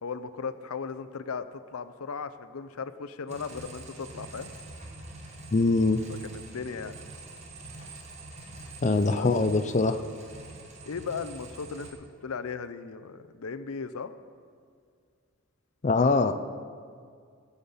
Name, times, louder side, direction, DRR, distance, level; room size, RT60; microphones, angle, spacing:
voice 1, 0.0-4.5 6.2-7.0 9.2-9.3 10.9-11.9 12.2-14.1, left 5 dB, 90° left, 12 dB, 0.6 m, -36 dB
sound 1, 3.3-11.9, right 2 dB, 30° right, 1.6 m, -45 dB
voice 2, 5.5-6.0 8.8-10.0 15.8-16.3, left 3 dB, 35° left, 8 dB, 0.5 m, -23 dB
17.5 x 7.2 x 5.6 m, 2.1 s
head